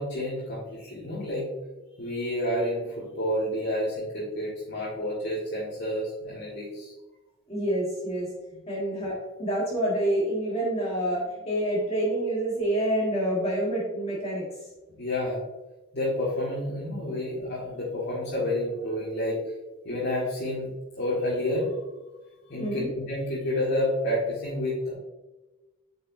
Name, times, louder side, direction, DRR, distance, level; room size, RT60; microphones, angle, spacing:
voice 1, 0.0-1.5 2.0-6.9 8.5-8.7 15.0-15.4 15.9-19.4 19.8-20.7 21.0-21.7 22.5-24.9, left 1 dB, 50° left, -8 dB, 2.0 m, -29 dB
voice 2, 7.5-8.3 8.7-14.5 22.6-22.9, right 1 dB, 30° left, -5 dB, 1.5 m, -27 dB
8.4 x 5.4 x 2.7 m, 1.1 s
head